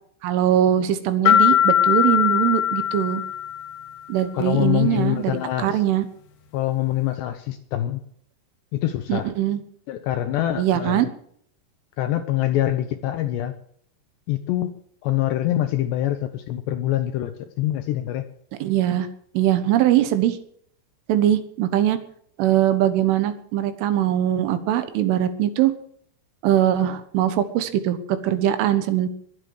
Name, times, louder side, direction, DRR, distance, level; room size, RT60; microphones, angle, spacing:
voice 1, 0.2-3.2 4.1-6.1 9.1-9.6 10.6-11.1 18.6-19.1 19.4-20.4 21.1-22.0 22.4-25.7 26.4-29.1, right 11 dB, 75° right, 11 dB, 3.7 m, -21 dB
sound 1, 1.3-3.9, left 10 dB, 55° left, 3.7 m, -20 dB
voice 2, 4.3-5.8 6.5-8.0 8.7-9.3 9.9-11.1 12.0-13.5 14.3-14.7 15.0-18.2, left 13 dB, 75° left, 9 dB, 2.7 m, -24 dB
22.5 x 8.2 x 6.4 m, 0.63 s
omnidirectional pair, 5.9 m